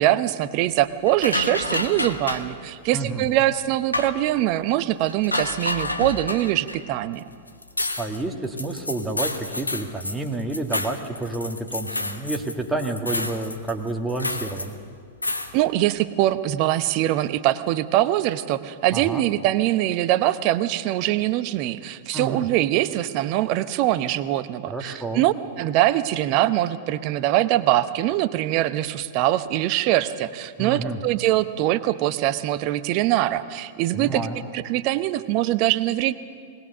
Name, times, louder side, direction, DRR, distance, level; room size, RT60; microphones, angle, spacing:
voice 1, 0.0-7.2 15.5-34.2 34.5-36.1, right 14 dB, 45° right, 13 dB, 0.8 m, -23 dB
sound 1, 1.1-2.5 3.3-3.4 3.9-4.2 5.1-6.8 7.2-7.3 7.5-12.5 12.8-14.7 15.2-15.5, left 2 dB, 90° left, 1.2 m, -29 dB
voice 2, 2.9-3.2 8.0-14.8 18.9-19.2 22.1-22.5 24.7-25.2 30.6-31.0 33.9-34.4, right 2 dB, 10° right, 2 dB, 1.8 m, -29 dB
20.5 x 19.0 x 6.8 m, 2.2 s
figure-of-eight pair, 100°, 0 cm